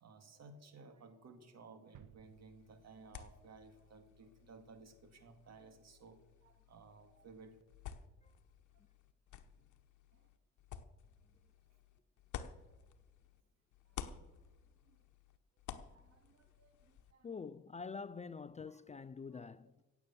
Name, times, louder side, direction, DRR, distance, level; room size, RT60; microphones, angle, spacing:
voice 1, 0.0-7.6 10.1-10.2 14.2-14.3 15.7-17.3 18.6-18.8 19.3-19.5, right 4 dB, 60° right, 2.1 m, -58 dB
sound 1, 1.9-3.8 4.1-4.2, right 12 dB, 85° right, 0.6 m, -63 dB
sound 2, 2.2-13.4 13.7-17.1, left 9 dB, 75° left, 1.1 m, -53 dB
voice 2, 17.2-19.8, left 5 dB, 25° left, 0.4 m, -46 dB
16.5 x 8.2 x 6.9 m
cardioid pair, 90°, 30 cm